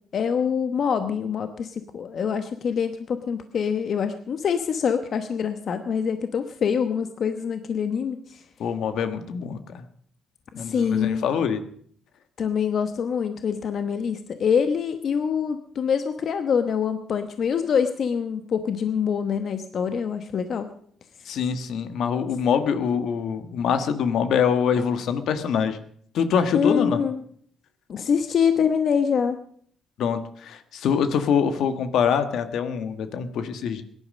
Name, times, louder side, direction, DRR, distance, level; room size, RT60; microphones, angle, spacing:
voice 1, 0.1-8.4 10.5-11.3 12.4-20.7 26.5-27.2 27.9-29.4, left 7 dB, 60° left, 9 dB, 1.0 m, -25 dB
voice 2, 8.6-9.8 10.5-11.6 21.2-25.8 26.1-27.0 30.0-33.8, left 7 dB, 75° left, 10 dB, 1.3 m, -24 dB
17.0 x 11.0 x 6.5 m, 0.62 s
cardioid pair, 90°, 0 cm